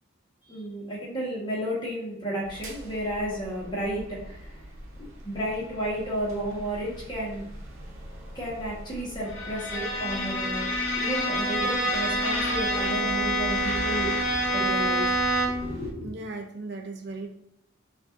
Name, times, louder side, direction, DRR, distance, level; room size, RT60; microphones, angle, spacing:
voice 1, 0.5-4.7 5.0-7.4 8.3-14.1 14.5-15.1 15.6-16.1, right 1 dB, 25° left, -5 dB, 1.3 m, -32 dB
sound 1, 2.4-15.9, right 1 dB, 85° right, 0.8 m, -42 dB
Bowed string instrument, 9.3-15.8, equal, 85° left, 0.8 m, -27 dB
voice 2, 16.0-17.3, right 3 dB, 55° right, 3 dB, 0.5 m, -37 dB
5.8 x 2.6 x 2.5 m, 0.76 s
head